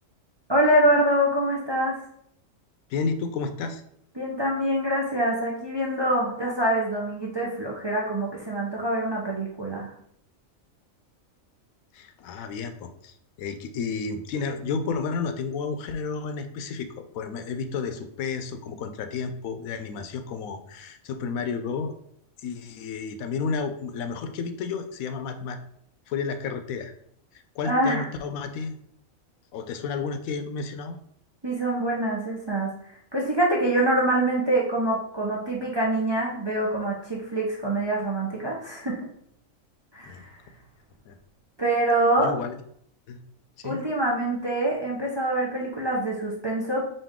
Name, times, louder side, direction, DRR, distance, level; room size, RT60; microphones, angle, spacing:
voice 1, 0.5-2.0 4.2-9.9 27.6-28.0 31.4-32.7 33.1-39.1 39.9-40.3 41.6-42.3 43.6-46.8, right 1 dB, 30° right, -3 dB, 0.5 m, -25 dB
voice 2, 2.9-3.8 11.9-21.9 22.4-25.6 26.1-26.9 27.6-28.8 29.5-31.0 40.0-40.2 41.1-41.2 42.2-42.6 43.1-43.2 43.6-43.8, left 5 dB, 90° left, 8 dB, 1.0 m, -31 dB
5.3 x 2.6 x 3.6 m, 0.69 s
omnidirectional pair, 1.4 m